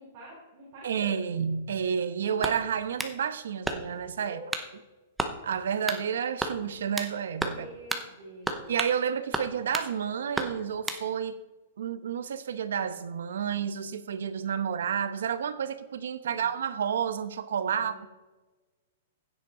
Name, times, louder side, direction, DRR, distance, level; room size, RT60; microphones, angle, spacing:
voice 1, 0.0-1.1 4.2-4.5 7.5-8.8 16.2-16.5 17.6-18.1, right 1 dB, 30° right, -5 dB, 4.3 m, -46 dB
voice 2, 0.8-4.4 5.4-7.7 8.7-11.4 11.8-18.1, right 7 dB, 75° right, 12 dB, 1.0 m, -30 dB
sound 1, 2.4-3.2 3.6-4.1 4.5-4.7 5.2-5.4 5.9-6.0 6.4-7.1 7.4-7.6 7.9-8.1 8.5-9.0 9.3-9.9 10.3-11.0, right 2 dB, 5° right, 0.7 m, -32 dB
15.0 x 9.6 x 3.9 m, 1.2 s
hypercardioid pair, 175°, 0 cm